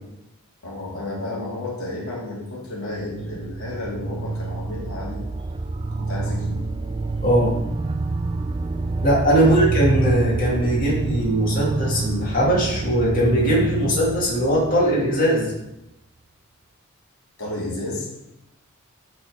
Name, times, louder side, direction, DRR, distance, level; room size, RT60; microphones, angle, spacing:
voice 1, 0.6-5.2 5.9-6.7 9.3-9.6 17.4-18.1, left 2 dB, 85° left, -3 dB, 2.0 m, -32 dB
sound 1, 2.7-15.6, right 3 dB, 25° right, 0.3 m, -28 dB
voice 2, 7.2-7.6 9.0-15.5, right 1 dB, 40° left, -5 dB, 1.9 m, -20 dB
7.4 x 4.1 x 4.8 m, 0.89 s
head